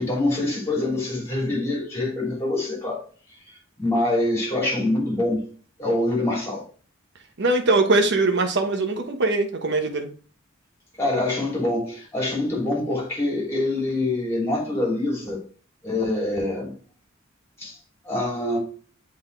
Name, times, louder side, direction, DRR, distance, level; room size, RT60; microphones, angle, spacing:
voice 1, 0.0-3.0 3.8-5.4 5.8-6.6 11.0-15.4 15.8-16.7 17.6-17.8 18.0-18.6, left 2 dB, 15° left, 2.9 m, -25 dB
voice 2, 7.4-10.1, right 2 dB, 60° right, 1.1 m, -21 dB
7.9 x 3.8 x 3.3 m
head